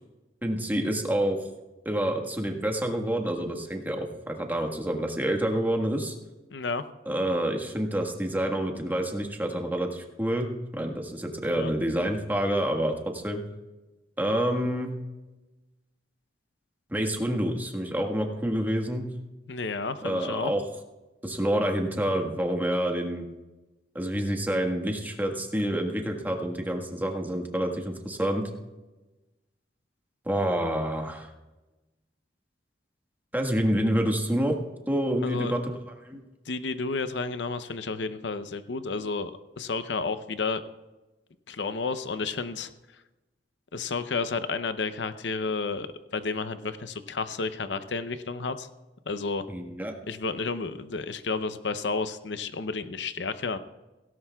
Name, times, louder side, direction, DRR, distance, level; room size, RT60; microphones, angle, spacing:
voice 1, 0.4-1.4 1.8-6.1 7.1-10.5 10.7-13.4 14.2-14.9 16.9-19.1 20.0-20.6 21.2-23.2 23.9-28.4 30.2-31.3 33.3-34.5 34.9-35.7 36.0-36.2 49.5-49.9, right 1 dB, 10° right, 2 dB, 1.5 m, -28 dB
voice 2, 6.5-6.8 11.5-11.7 19.5-20.5 35.2-35.5 36.5-40.6 41.5-42.7 43.7-45.9 46.1-48.7 49.1-49.4 50.1-53.6, left 4 dB, 75° left, 11 dB, 0.7 m, -31 dB
17.0 x 17.0 x 2.3 m, 1.1 s
head